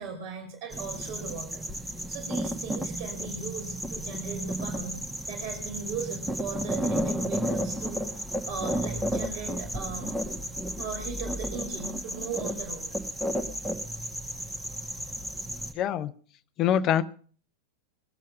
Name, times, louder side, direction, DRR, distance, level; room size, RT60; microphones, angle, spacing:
voice 1, 0.0-5.0 5.3-10.1 10.8-12.9, right 5 dB, 45° right, 3 dB, 2.5 m, -38 dB
sound 1, 0.7-15.7, equal, 10° right, 1.5 m, -33 dB
voice 2, 15.7-16.1 16.6-17.0, left 10 dB, 35° left, 12 dB, 0.6 m, -24 dB
22.0 x 7.5 x 5.2 m, 0.43 s
figure-of-eight pair, 90°, 0 cm